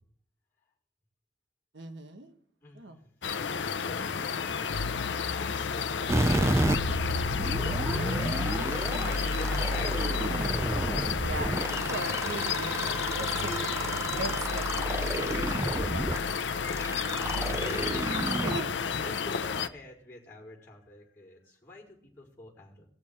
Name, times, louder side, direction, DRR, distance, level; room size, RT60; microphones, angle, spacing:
voice 1, 1.7-2.3 2.7-3.0 8.9-9.1 10.4-10.5 11.1-11.5 11.9-13.7 14.1-14.6 15.0-16.3 18.4-18.7, right 2 dB, 80° right, 6 dB, 1.3 m, -39 dB
voice 2, 2.6-4.3 8.9-10.1 11.2-13.2 15.1-15.3 16.8-18.6 19.0-22.9, left 1 dB, 15° left, -12 dB, 4.4 m, -46 dB
sound 1, 3.2-19.7, left 5 dB, 80° left, 0.6 m, -31 dB
sound 2, 6.1-18.6, right 1 dB, 15° right, 0.5 m, -31 dB
19.5 x 6.6 x 4.3 m, 0.64 s
head